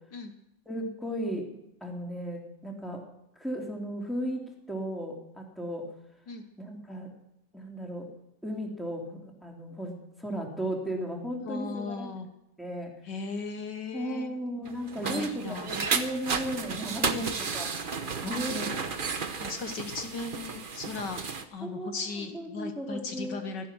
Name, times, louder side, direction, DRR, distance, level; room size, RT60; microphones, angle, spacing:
voice 1, 0.6-1.4 1.8-3.0 3.4-5.8 6.6-7.1 7.5-8.1 8.4-12.1 12.6-12.9 13.9-17.7 18.2-18.8 21.6-22.0 22.3-23.4, right 1 dB, ahead, -1 dB, 3.3 m, -35 dB
voice 2, 11.4-12.3 13.0-14.3 15.0-15.7 17.1-17.3 18.2-18.4 19.4-21.2 21.5-23.7, left 4 dB, 65° left, 6 dB, 1.8 m, -37 dB
sound 1, 14.6-21.4, right 5 dB, 35° right, 0.9 m, -33 dB
16.0 x 13.5 x 6.2 m, 0.84 s
omnidirectional pair, 2.0 m